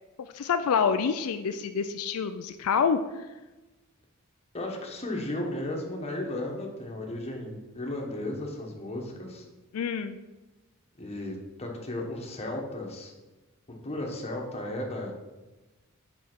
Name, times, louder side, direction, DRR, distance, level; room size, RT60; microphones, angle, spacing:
voice 1, 0.3-3.0 9.7-10.2, left 6 dB, 80° left, 9 dB, 0.4 m, -27 dB
voice 2, 4.5-9.4 11.0-13.1 13.8-15.3, left 1 dB, 30° left, 1 dB, 1.2 m, -35 dB
5.6 x 5.0 x 6.1 m, 1.1 s
head